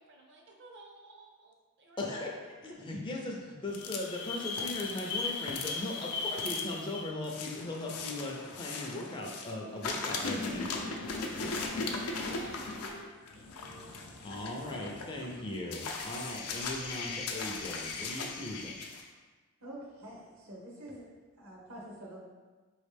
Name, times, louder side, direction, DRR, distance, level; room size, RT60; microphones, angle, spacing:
voice 1, 0.0-2.8 10.0-14.2, right 2 dB, 55° right, 0 dB, 0.7 m, -55 dB
voice 2, 2.0-2.3 2.6-10.7 14.2-18.8, left 1 dB, 20° left, -1 dB, 0.4 m, -38 dB
sound 1, 3.7-9.5 9.8-19.0, left 4 dB, 85° left, 0.5 m, -38 dB
voice 3, 19.6-21.1 21.3-22.2, right 1 dB, 70° right, -3 dB, 1.0 m, -46 dB
4.6 x 3.1 x 3.3 m, 1.3 s
head